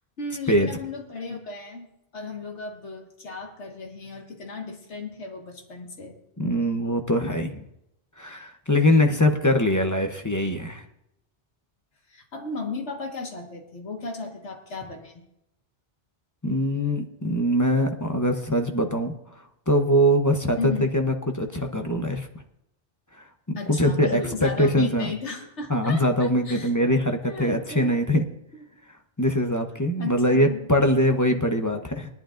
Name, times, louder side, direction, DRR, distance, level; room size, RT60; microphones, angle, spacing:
voice 1, 0.2-6.2 9.1-9.2 12.1-15.2 20.6-20.9 23.6-26.7 27.2-28.0 28.5-28.7 30.0-30.6, left 3 dB, 90° left, 2 dB, 1.9 m, -35 dB
voice 2, 6.4-7.6 8.2-10.8 16.4-19.1 19.7-22.3 23.2-25.1 25.7-28.2 29.2-32.1, equal, 20° left, 4 dB, 0.7 m, -22 dB
19.5 x 11.5 x 2.5 m, 0.83 s
omnidirectional pair, 1.1 m